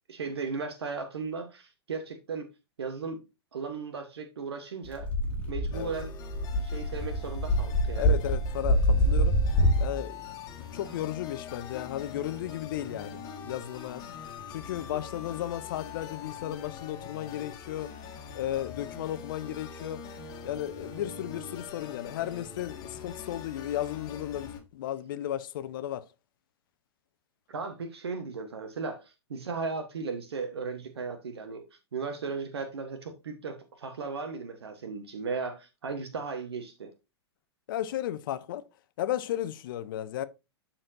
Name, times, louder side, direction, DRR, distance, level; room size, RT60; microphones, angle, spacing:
voice 1, 0.1-2.5 2.8-3.2 3.5-5.1 5.5-6.1 6.6-8.1 14.8-15.0 27.5-36.9, right 4 dB, 65° right, 1.2 m, -36 dB
sound 1, 4.9-9.9, equal, 10° left, 2.4 m, -25 dB
voice 2, 5.5-5.9 8.0-9.3 9.8-10.4 10.7-14.1 14.5-17.9 18.3-20.0 20.4-26.1 37.7-38.6 39.0-40.2, left 12 dB, 50° left, 0.8 m, -34 dB
sound 2, 5.7-24.6, left 5 dB, 30° left, 1.8 m, -42 dB
12.5 x 4.4 x 2.6 m
figure-of-eight pair, 100°, 14 cm